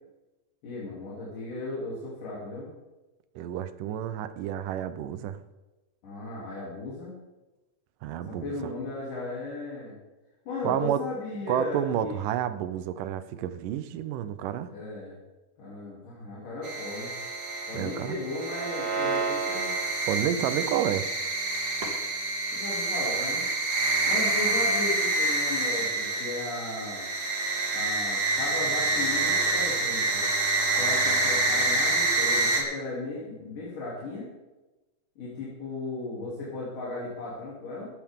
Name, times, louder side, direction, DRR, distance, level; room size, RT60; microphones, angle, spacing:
voice 1, 0.6-2.7 6.0-7.1 8.2-9.9 10.5-12.2 14.7-15.2 15.6-17.2 17.7-19.7 22.5-23.4 24.1-27.1 27.7-30.3 30.7-34.3 35.2-37.9, left 2 dB, 80° left, -7 dB, 4.7 m, -36 dB
voice 2, 3.4-5.4 8.0-8.5 10.6-11.0 11.5-14.7 17.7-18.2 20.1-21.1, right 10 dB, 85° right, 13 dB, 2.4 m, -30 dB
sound 1, 16.6-32.6, right 2 dB, 35° right, 2.2 m, -27 dB
15.5 x 13.0 x 3.7 m, 1.1 s
omnidirectional pair, 3.7 m